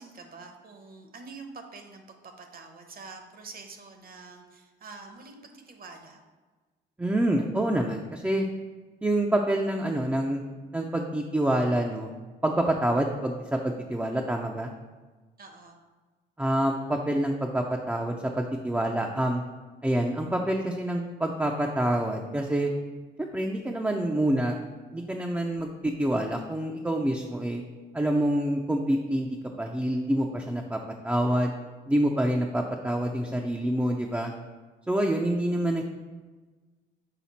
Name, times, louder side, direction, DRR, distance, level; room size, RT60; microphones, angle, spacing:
voice 1, 0.0-6.2 15.4-15.8, right 4 dB, 45° right, 5 dB, 0.9 m, -46 dB
voice 2, 7.0-8.5 9.0-10.4 10.7-12.1 12.4-14.7 16.4-19.4 19.8-22.7 23.2-24.6 24.9-27.6 27.9-31.6 31.9-34.3 34.9-35.8, right 1 dB, 10° right, 1 dB, 0.5 m, -27 dB
5.8 x 4.1 x 4.1 m, 1.3 s
cardioid pair, 90°, 20 cm